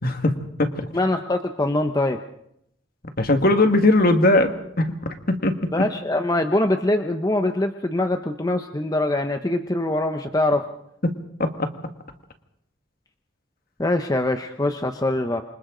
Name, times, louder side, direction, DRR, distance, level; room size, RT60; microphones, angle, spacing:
voice 1, 0.0-0.9 3.2-4.5 4.8-4.9 5.3-5.9 11.0-11.7, left 2 dB, 50° left, 6 dB, 1.9 m, -20 dB
voice 2, 0.9-2.2 5.7-10.6 13.8-15.4, left 1 dB, 20° left, 6 dB, 0.8 m, -23 dB
27.5 x 25.0 x 3.9 m, 0.75 s
head